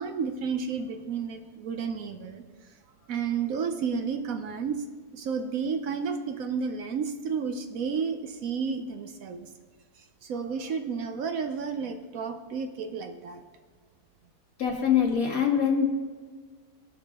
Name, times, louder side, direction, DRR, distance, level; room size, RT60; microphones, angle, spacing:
voice 1, 0.0-2.4 3.1-4.8 5.1-9.5 10.2-13.4, right 6 dB, 65° right, 6 dB, 1.1 m, -31 dB
voice 2, 14.6-15.9, left 8 dB, 60° left, 1 dB, 1.9 m, -23 dB
17.0 x 5.7 x 3.6 m, 1.5 s
omnidirectional pair, 1.7 m